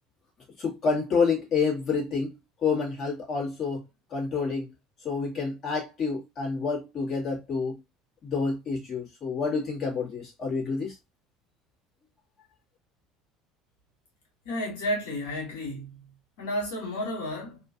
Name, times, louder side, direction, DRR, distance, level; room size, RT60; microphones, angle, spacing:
voice 1, 0.6-2.3 2.6-3.8 4.1-4.7 5.0-7.8 8.2-10.9, left 5 dB, 45° left, 1.8 m, -28 dB
voice 2, 14.5-16.1 16.4-17.6, left 1 dB, 80° left, 1.8 m, -32 dB
3.0 x 2.6 x 2.4 m
hypercardioid pair, 80°, 0 cm